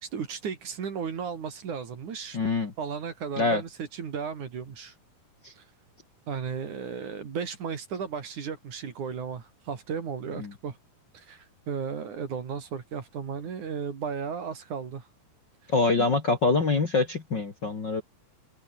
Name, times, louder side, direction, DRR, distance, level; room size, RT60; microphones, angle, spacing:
voice 1, 0.0-2.4 2.8-4.9 5.6-5.7 6.3-10.8 11.1-15.1 16.0-16.1, right 6 dB, 55° right, 4.1 m, -35 dB
voice 2, 2.3-2.7 3.4-3.6 5.4-5.5 10.4-10.5 15.7-18.0, left 3 dB, 35° left, 2.2 m, -25 dB
open air
omnidirectional pair, 4.5 m